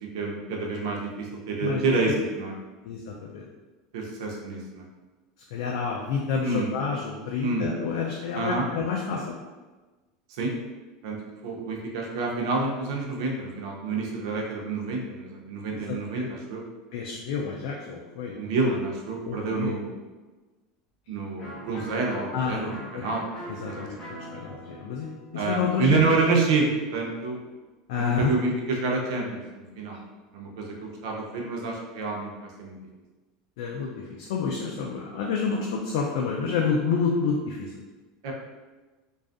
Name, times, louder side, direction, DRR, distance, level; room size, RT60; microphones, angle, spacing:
voice 1, 0.0-2.6 3.9-4.8 6.4-6.7 7.4-7.7 8.3-8.7 10.3-10.5 11.0-11.2 11.4-16.6 18.4-19.9 21.1-23.9 25.3-27.4 27.9-30.0 30.3-32.3 32.6-32.8 38.2-38.3, right 3 dB, 75° right, -1 dB, 0.5 m, -28 dB
voice 2, 2.8-3.5 5.5-9.2 15.7-15.8 16.1-16.3 16.9-18.3 19.2-19.7 22.3-23.1 23.6-26.3 27.9-28.3 33.6-37.7, left 5 dB, 70° left, -2 dB, 0.3 m, -29 dB
Electric guitar, 21.4-27.0, equal, 25° left, 0.7 m, -43 dB
2.5 x 2.3 x 2.4 m, 1.2 s
supercardioid pair, 150°, 3 cm